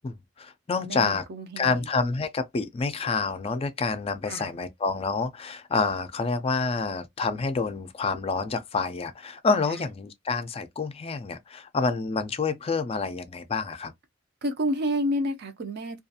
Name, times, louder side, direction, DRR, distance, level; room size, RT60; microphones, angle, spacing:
voice 1, 0.0-1.2 1.6-13.9, left 4 dB, 30° left, 0.4 m, -28 dB
voice 2, 0.8-1.9 4.3-4.5 9.7-9.8 14.4-16.0, equal, 55° right, 0.5 m, -30 dB
2.4 x 2.3 x 2.6 m
head